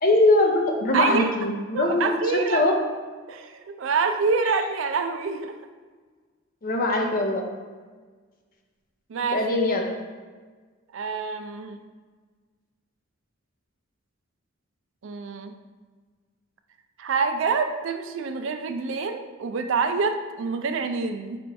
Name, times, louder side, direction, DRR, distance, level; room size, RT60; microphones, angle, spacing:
voice 1, 0.0-2.8 6.6-7.5 9.3-9.9, left 1 dB, 45° left, 2 dB, 0.6 m, -22 dB
voice 2, 0.9-1.3 1.7-2.6 3.3-5.6 9.1-9.4 10.9-11.8 15.0-15.5 17.0-21.4, right 4 dB, 65° right, 7 dB, 0.4 m, -26 dB
4.3 x 2.6 x 4.6 m, 1.5 s
head